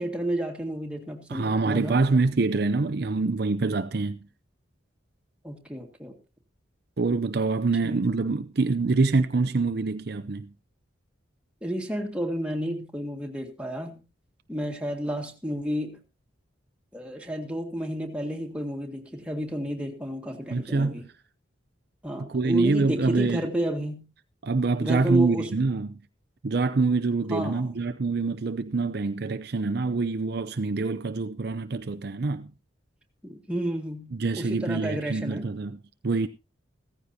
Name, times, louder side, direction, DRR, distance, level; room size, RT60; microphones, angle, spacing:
voice 1, 0.0-2.0 5.4-6.2 7.8-8.0 11.6-14.0 14.5-16.0 16.9-21.1 22.0-24.1 24.8-25.5 27.3-27.7 33.2-35.5, right 1 dB, 5° right, 1.9 m, -31 dB
voice 2, 1.3-4.2 7.0-10.5 20.5-21.0 22.3-23.4 24.4-25.9 26.4-32.5 34.1-36.3, right 3 dB, 55° right, 0.6 m, -25 dB
16.0 x 14.5 x 2.8 m
head